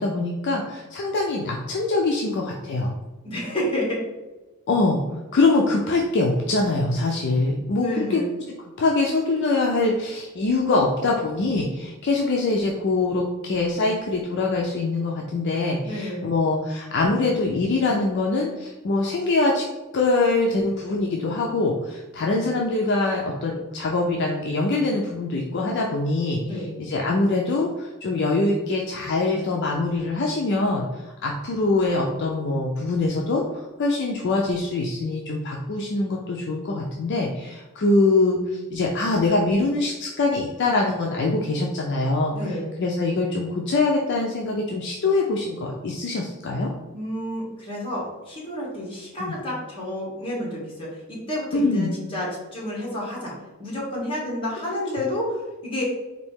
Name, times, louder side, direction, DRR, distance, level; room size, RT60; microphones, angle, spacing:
voice 1, 0.0-2.9 4.7-5.0 5.3-8.2 8.8-19.6 19.9-46.7 49.2-49.4 51.5-51.9, left 2 dB, 50° left, -1 dB, 0.4 m, -23 dB
voice 2, 3.2-4.0 7.8-8.3 15.8-16.3 26.4-26.7 42.3-42.7 46.9-53.3 53.6-55.8, left 1 dB, 25° left, -4 dB, 1.3 m, -30 dB
4.0 x 2.7 x 3.5 m, 1.1 s
head